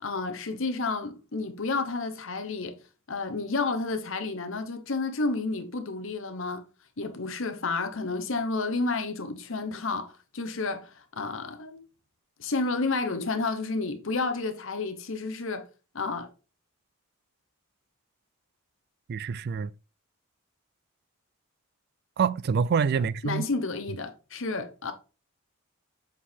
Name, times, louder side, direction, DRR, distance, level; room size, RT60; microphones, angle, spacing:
voice 1, 0.0-2.8 3.1-6.6 7.0-11.8 12.4-15.7 15.9-16.3 23.2-24.9, left 3 dB, 60° left, 1.0 m, -31 dB
voice 2, 19.1-19.7 22.2-23.5, right 6 dB, 50° right, 0.3 m, -26 dB
7.2 x 4.5 x 3.6 m
head